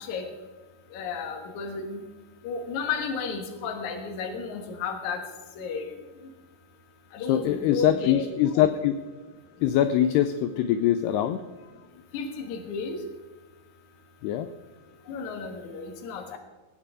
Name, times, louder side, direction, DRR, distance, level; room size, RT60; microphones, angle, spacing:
voice 1, 0.9-2.0 2.4-5.2 5.6-5.9 7.1-8.2 12.1-13.0 15.1-16.4, left 4 dB, 60° left, 5 dB, 2.2 m, -33 dB
voice 2, 7.2-9.0 9.6-11.4 14.2-14.5, left 11 dB, 80° left, 10 dB, 2.4 m, -23 dB
19.0 x 9.0 x 4.8 m, 1.3 s
omnidirectional pair, 5.2 m